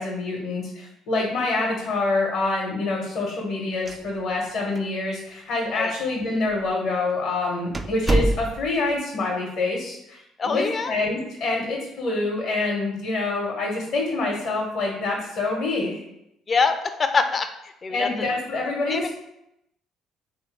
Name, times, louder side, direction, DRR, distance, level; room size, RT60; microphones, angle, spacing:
voice 1, 0.0-16.0 17.9-19.1, left 3 dB, 65° left, -2 dB, 0.9 m, -26 dB
sound 1, 3.7-4.5 4.8-4.9 5.6-5.7 6.5-6.7 7.1-7.2 7.7-8.9, right 2 dB, 25° right, 0.3 m, -25 dB
voice 2, 10.4-10.9 16.5-17.5 17.8-18.1 18.9-19.1, left 4 dB, 40° left, 8 dB, 0.5 m, -24 dB
3.4 x 2.6 x 4.5 m, 0.83 s
hypercardioid pair, 60°, 0 cm